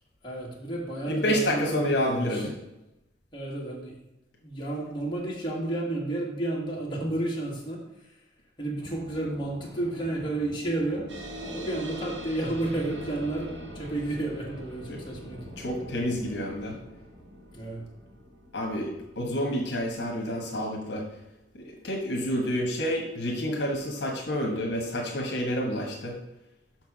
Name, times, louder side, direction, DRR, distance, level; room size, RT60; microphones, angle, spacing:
voice 1, 0.2-2.5 3.3-3.9 4.4-8.2 8.6-11.1 11.4-15.5 17.5-17.8, right 2 dB, 25° left, -4 dB, 1.7 m, -31 dB
voice 2, 1.1-2.5 15.6-16.7 18.5-21.0 21.5-26.2, equal, 65° left, 0 dB, 1.3 m, -29 dB
sound 1, 8.8-18.6, equal, 40° right, 1.8 m, -47 dB
sound 2, 11.1-22.0, right 1 dB, 75° right, 1.1 m, -45 dB
6.0 x 4.6 x 6.0 m, 0.94 s
head